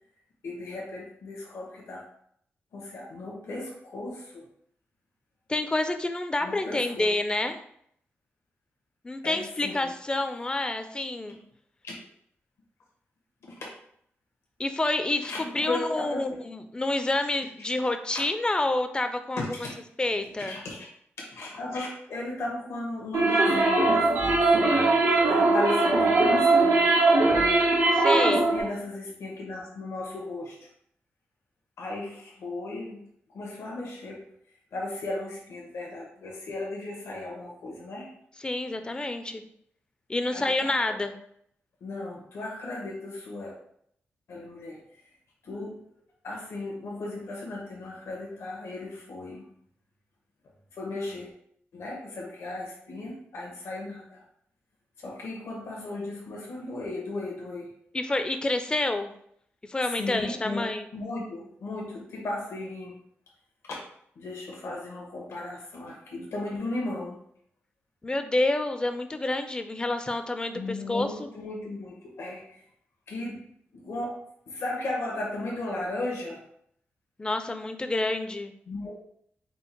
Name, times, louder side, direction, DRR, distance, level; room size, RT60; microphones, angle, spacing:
voice 1, 0.4-2.0 2.7-4.5 6.4-7.1 9.2-9.9 11.8-11.9 13.4-13.7 15.2-16.4 18.1-18.2 19.4-19.7 20.4-20.8 21.3-24.5 25.2-26.9 28.2-30.7 31.8-34.3 34.7-38.1 40.3-41.0 41.8-43.5 44.3-45.0 45.4-45.8 46.2-49.5 50.7-51.3 51.7-54.2 55.0-57.7 59.8-63.0 63.7-63.8 64.2-67.2 70.5-72.6 73.1-73.5 73.7-74.2 74.5-76.5 78.7-79.0, left 2 dB, 80° left, -2 dB, 1.1 m, -36 dB
voice 2, 5.5-7.6 9.0-11.4 14.6-19.4 20.0-20.5 27.9-28.5 38.4-39.4 40.1-41.1 57.9-59.1 59.7-60.8 68.0-71.3 77.2-78.5, left 2 dB, 20° left, 8 dB, 0.4 m, -28 dB
sound 1, 23.1-28.6, right 2 dB, 85° right, 0.9 m, -21 dB
4.4 x 2.0 x 4.4 m, 0.69 s
cardioid pair, 95°, 4 cm